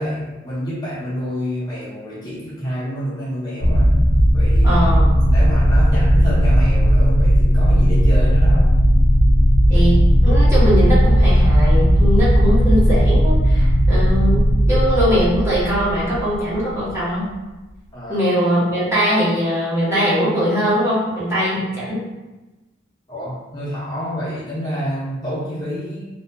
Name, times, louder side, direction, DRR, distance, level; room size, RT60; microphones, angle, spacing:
voice 1, 0.0-4.0 4.3-8.8 17.9-18.2 23.1-26.0, equal, 20° left, -9 dB, 0.7 m, -28 dB
sound 1, 3.6-16.6, equal, 60° left, 0.6 m, -15 dB
voice 2, 4.6-5.1 9.7-17.3 18.1-22.0, equal, 15° right, -10 dB, 0.8 m, -21 dB
2.6 x 2.5 x 2.2 m, 1.1 s
head